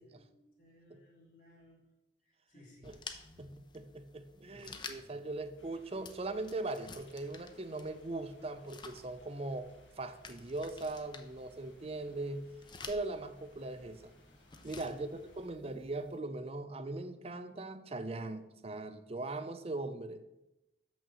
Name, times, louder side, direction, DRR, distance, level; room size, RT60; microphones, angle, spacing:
voice 1, 0.0-1.8 2.2-3.0 4.4-5.2 14.6-14.9, left 1 dB, 45° left, -4 dB, 1.8 m, -60 dB
sound 1, 2.8-16.2, left 4 dB, 25° left, 0.6 m, -53 dB
voice 2, 3.4-9.7 10.0-12.5 12.9-14.1 14.6-15.1 15.4-20.2, right 2 dB, 30° right, 10 dB, 0.6 m, -40 dB
sound 2, 5.6-15.5, left 1 dB, 90° left, 1.8 m, -64 dB
6.2 x 6.2 x 6.9 m, 0.95 s
head